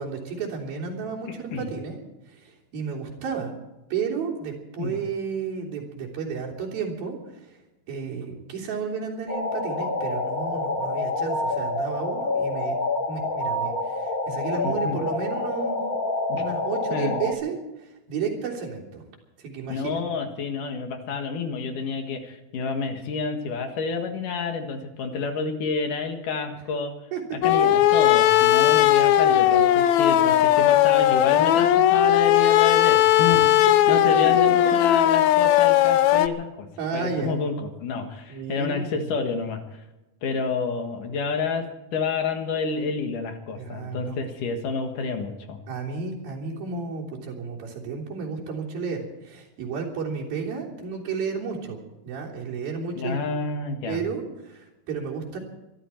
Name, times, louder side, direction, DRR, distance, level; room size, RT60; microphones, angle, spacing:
voice 1, 0.0-2.0 2.3-3.5 3.9-7.6 7.9-12.7 13.1-15.8 16.4-19.0 19.4-20.0 27.1-27.2 34.3-34.4 36.8-37.4 38.3-39.1 43.5-44.2 45.7-51.8 52.1-53.2 53.9-55.4, right 5 dB, 75° right, -2 dB, 5.3 m, -32 dB
voice 2, 1.3-1.7 4.8-4.9 14.6-15.0 16.3-16.4 16.9-17.2 19.7-26.9 27.3-33.5 33.9-36.7 36.9-39.8 40.2-41.7 41.9-45.6 53.0-54.0, left 4 dB, 65° left, 5 dB, 3.0 m, -29 dB
sound 1, 9.3-17.3, left 2 dB, 40° left, 1.4 m, -27 dB
sound 2, 27.4-36.3, left 12 dB, 85° left, 1.6 m, -18 dB
24.5 x 13.0 x 4.5 m, 1.0 s
omnidirectional pair, 4.2 m